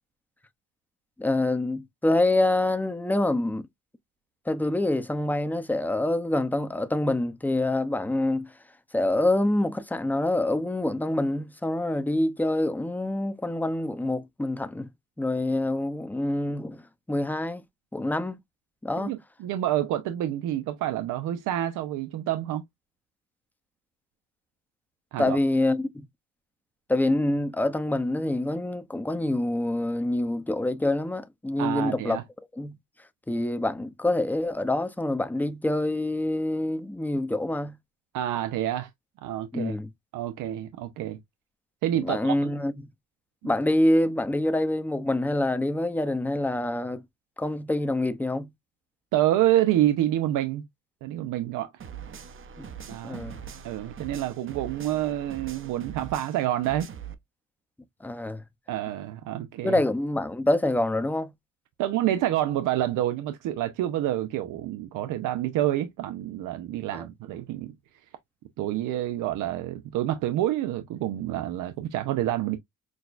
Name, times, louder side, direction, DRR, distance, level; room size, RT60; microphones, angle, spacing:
voice 1, 1.2-3.7 4.5-8.5 8.9-14.9 15.2-16.8 17.1-17.6 17.9-18.4 18.8-19.1 25.2-26.1 26.9-32.2 32.5-32.8 33.3-37.8 39.5-39.9 41.9-42.7 43.4-47.0 47.4-48.5 52.6-52.7 53.0-53.4 58.0-58.4 59.6-61.3 66.9-67.0, left 1 dB, 5° left, 0.6 m, -26 dB
voice 2, 19.0-22.6 25.1-25.4 31.6-32.2 38.1-38.9 39.2-39.8 40.1-41.2 41.8-42.3 49.1-50.6 51.0-51.7 52.9-53.2 53.6-56.9 58.7-59.8 61.8-67.7 68.6-72.6, right 13 dB, 90° right, 0.6 m, -28 dB
sound 1, 51.8-57.1, right 8 dB, 45° right, 0.8 m, -42 dB
6.2 x 2.3 x 2.5 m
cardioid pair, 90°, 30 cm